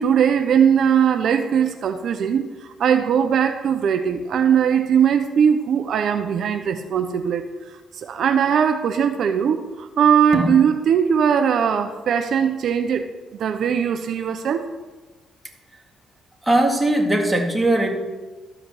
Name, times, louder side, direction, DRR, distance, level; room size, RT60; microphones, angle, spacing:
voice 1, 0.0-7.4 8.0-13.1 13.4-14.7, right 8 dB, 65° right, 8 dB, 0.7 m, -20 dB
voice 2, 16.4-17.9, right 1 dB, 10° right, 1 dB, 2.1 m, -19 dB
13.0 x 5.1 x 7.6 m, 1.3 s
cardioid pair, 90°, 0 cm